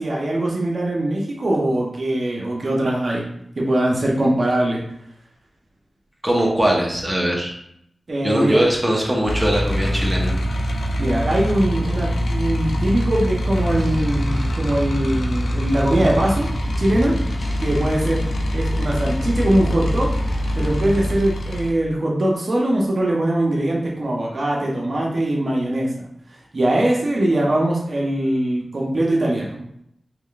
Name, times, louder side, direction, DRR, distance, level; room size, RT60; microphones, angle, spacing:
voice 1, 0.0-3.2 3.6-4.8 8.1-8.6 11.0-16.5 16.8-17.1 17.6-18.2 18.5-20.1 20.6-25.9 26.5-29.6, right 1 dB, 55° right, -3 dB, 0.8 m, -21 dB
voice 2, 6.2-7.5 8.2-10.3, right 1 dB, 10° right, -2 dB, 1.0 m, -20 dB
sound 1, 9.2-21.7, equal, 85° left, 0.5 m, -24 dB
sound 2, 13.5-21.2, equal, 15° left, 0.4 m, -32 dB
3.6 x 3.3 x 2.4 m, 0.74 s
cardioid pair, 60°, 0 cm